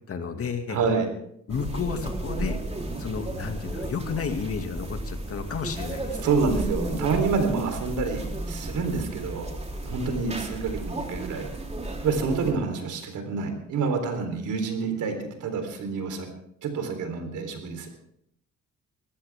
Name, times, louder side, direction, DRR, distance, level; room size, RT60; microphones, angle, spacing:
voice 1, 0.1-0.8 1.5-2.6 3.0-6.4, left 5 dB, 50° left, 6 dB, 2.2 m, -32 dB
voice 2, 0.7-1.1 6.2-9.5 9.8-11.5 12.0-16.3 16.6-17.9, right 4 dB, 80° right, 6 dB, 3.8 m, -28 dB
sound 1, 1.5-12.5, right 1 dB, 20° right, 3.6 m, -33 dB
20.5 x 15.5 x 3.6 m, 0.72 s
cardioid pair, 90°, 30 cm